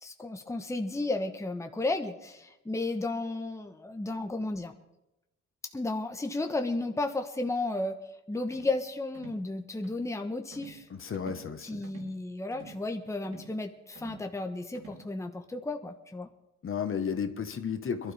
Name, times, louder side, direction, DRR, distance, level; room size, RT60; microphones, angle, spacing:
voice 1, 0.0-4.7 5.7-7.9 8.3-10.9 11.6-16.3, left 2 dB, 10° left, 5 dB, 1.1 m, -33 dB
sound 1, 8.5-8.8 9.1-9.5 9.8-10.1 10.5-10.9 11.1-11.5 11.8-12.2 12.5-12.8 13.2-13.6 14.0-14.3 14.7-15.1, right 3 dB, 60° right, 5.0 m, -49 dB
voice 2, 10.9-11.8 16.6-18.1, left 7 dB, 45° left, 8 dB, 1.4 m, -33 dB
22.5 x 12.5 x 3.5 m, 0.91 s
cardioid pair, 90°, 30 cm